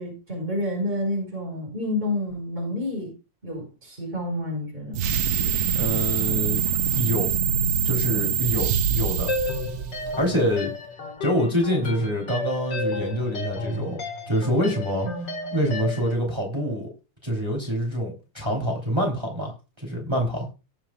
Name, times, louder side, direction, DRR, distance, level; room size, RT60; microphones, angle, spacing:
voice 1, 0.0-3.1 3.4-5.1 15.0-15.2, left 1 dB, 30° right, -1 dB, 5.2 m, -29 dB
sound 1, 4.9-10.4, right 9 dB, 65° right, 1.0 m, -24 dB
voice 2, 5.7-6.6 6.9-7.3 7.8-9.3 10.2-10.7 11.2-14.0 14.3-15.1 15.5-16.9 17.2-20.5, equal, 15° right, -1 dB, 3.0 m, -26 dB
sound 2, 9.3-16.1, left 2 dB, 75° left, 3.1 m, -32 dB
19.5 x 7.2 x 2.3 m, 0.30 s
omnidirectional pair, 2.0 m